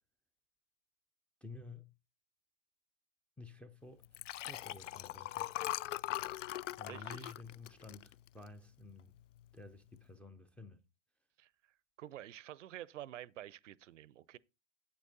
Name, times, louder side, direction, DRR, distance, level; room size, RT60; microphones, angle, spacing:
voice 1, 1.4-1.9 3.4-4.1 4.5-5.5 6.8-9.1 9.5-10.8, left 3 dB, 5° left, 0.4 m, -52 dB
Liquid, 4.0-8.7 9.2-9.4 9.7-9.8, left 14 dB, 75° left, 0.5 m, -41 dB
voice 2, 6.9-7.3 11.4-11.5 12.0-14.4, right 13 dB, 70° right, 0.6 m, -49 dB
8.6 x 8.3 x 4.0 m
hypercardioid pair, 115°, 38 cm